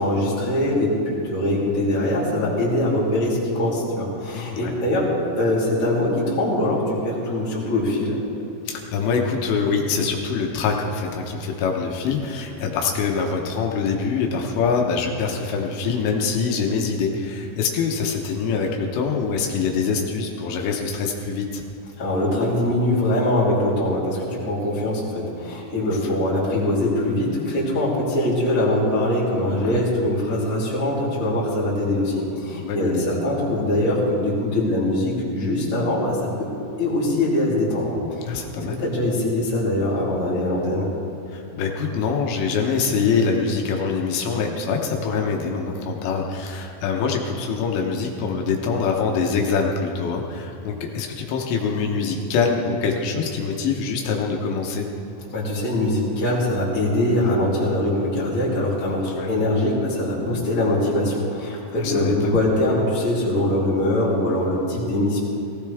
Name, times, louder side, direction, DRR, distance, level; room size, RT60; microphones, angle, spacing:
voice 1, 0.0-5.1 5.4-8.2 22.0-36.5 36.8-40.9 55.3-65.2, left 1 dB, 20° left, -7 dB, 2.7 m, -22 dB
voice 2, 4.3-4.7 8.7-21.6 25.8-26.1 29.6-29.8 32.5-33.0 38.3-38.8 41.3-54.9 59.1-59.3 61.8-62.4, left 5 dB, 80° left, 1 dB, 3.2 m, -24 dB
18.5 x 16.0 x 3.5 m, 2.7 s
omnidirectional pair, 5.2 m